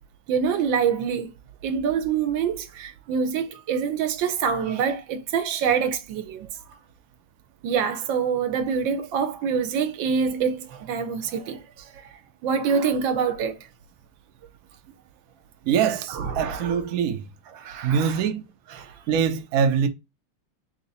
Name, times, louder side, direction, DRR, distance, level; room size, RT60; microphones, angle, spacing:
voice 1, 0.3-1.3 1.6-6.5 7.6-11.6 12.4-13.6 16.1-16.8 17.5-18.2 18.7-18.9, right 6 dB, 70° right, 1.3 m, -25 dB
voice 2, 15.7-17.2 17.8-18.4 19.1-19.9, right 7 dB, 90° right, 0.7 m, -23 dB
3.8 x 2.9 x 3.9 m
omnidirectional pair, 2.4 m